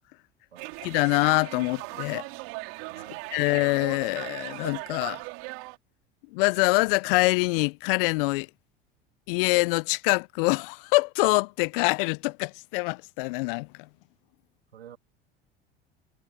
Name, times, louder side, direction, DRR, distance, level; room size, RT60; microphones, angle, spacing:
sound 1, 0.6-5.8, right 30 dB, 65° right, 4.2 m, -38 dB
voice 1, 0.8-2.3 3.3-5.2 6.3-8.5 9.3-13.7, left 27 dB, 65° left, 0.7 m, -25 dB
voice 2, 2.9-3.3 14.7-15.0, right 9 dB, 90° right, 3.2 m, -48 dB
hypercardioid pair, 75°, 30 cm